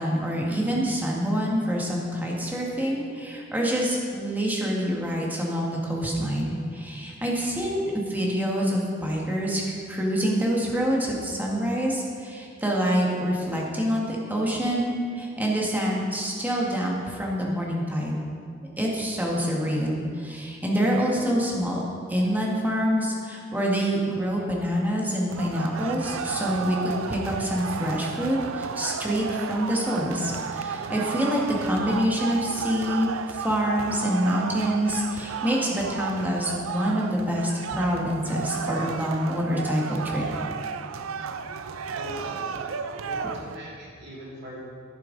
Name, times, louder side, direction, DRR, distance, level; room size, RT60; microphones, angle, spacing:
voice 1, 0.0-18.2 18.8-21.8 22.1-40.2, equal, 10° right, -3 dB, 1.6 m, -26 dB
sound 1, 25.3-43.6, right 6 dB, 80° right, 0.4 m, -33 dB
voice 2, 41.9-42.6 42.9-44.6, equal, 60° right, -5 dB, 2.6 m, -39 dB
11.0 x 8.9 x 3.9 m, 2.3 s
head